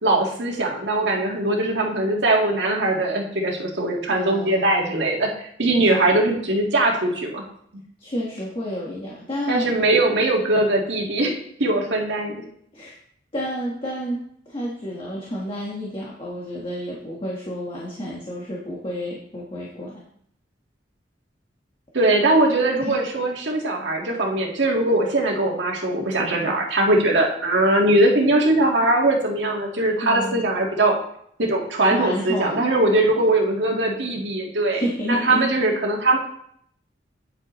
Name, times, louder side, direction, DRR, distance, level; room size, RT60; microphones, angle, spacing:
voice 1, 0.0-7.4 9.5-12.4 21.9-31.0 31.4-36.2, right 2 dB, 80° right, -1 dB, 1.8 m, -21 dB
voice 2, 4.1-5.0 5.8-6.0 8.0-9.7 12.7-13.0 13.3-14.2 14.5-20.0 22.8-23.0 30.0-30.5 31.9-32.7 34.7-35.5, equal, 30° left, -4 dB, 1.5 m, -30 dB
9.7 x 7.7 x 3.1 m, 0.67 s
head